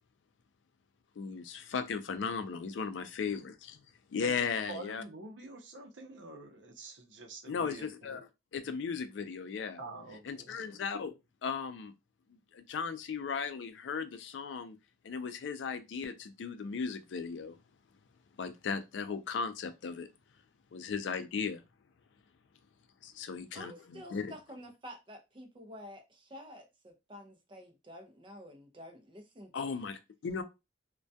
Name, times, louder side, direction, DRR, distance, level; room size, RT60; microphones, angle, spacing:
voice 1, 1.2-3.8 4.1-5.0 7.5-8.2 8.5-9.8 10.3-11.1 11.4-11.9 12.5-14.8 15.0-17.6 18.4-20.1 20.7-21.6 23.0-24.3 29.5-30.4, left 5 dB, 75° left, 0.4 m, -36 dB
voice 2, 4.2-8.2 9.8-10.5, right 3 dB, 75° right, 0.6 m, -47 dB
voice 3, 23.5-29.9, equal, 25° right, 0.5 m, -50 dB
2.2 x 2.2 x 2.6 m
head